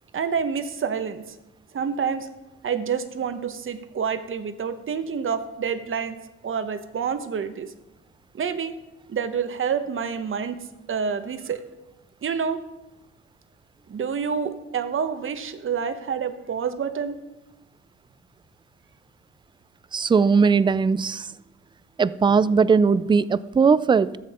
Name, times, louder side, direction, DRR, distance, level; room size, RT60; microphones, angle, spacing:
voice 1, 0.1-1.2 1.7-2.3 2.6-6.2 6.4-7.7 8.3-8.7 9.1-10.6 10.9-11.6 12.2-12.6 13.9-17.2, right 6 dB, 45° right, 10 dB, 1.0 m, -28 dB
voice 2, 19.9-21.3 22.0-24.2, right 5 dB, 15° right, 18 dB, 0.3 m, -19 dB
14.0 x 7.4 x 4.3 m, 1.0 s
cardioid pair, 90°, 30 cm